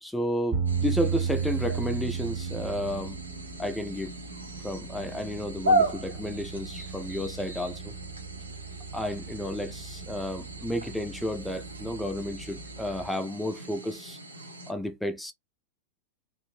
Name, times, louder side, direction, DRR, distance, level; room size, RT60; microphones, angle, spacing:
voice 1, 0.0-3.2 3.6-4.1 4.6-7.9 8.9-14.2 14.7-15.3, left 1 dB, 5° left, 0.5 m, -32 dB
sound 1, 0.5-13.0, right 6 dB, 30° right, 0.9 m, -35 dB
sound 2, 0.7-14.7, right 1 dB, 80° right, 0.7 m, -35 dB
2.5 x 2.1 x 3.0 m
figure-of-eight pair, 90°, 0 cm